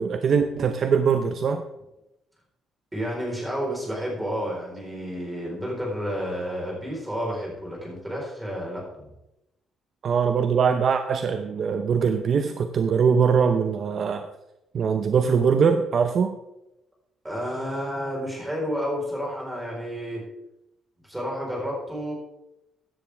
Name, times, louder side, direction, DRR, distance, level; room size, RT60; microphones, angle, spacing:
voice 1, 0.0-1.6 10.0-14.3 14.7-16.4, right 6 dB, 45° right, 8 dB, 0.7 m, -22 dB
voice 2, 2.9-9.1 17.2-20.2 21.1-22.1, equal, 5° right, -2 dB, 4.3 m, -30 dB
15.0 x 10.5 x 3.5 m, 0.90 s
cardioid pair, 160°, 0 cm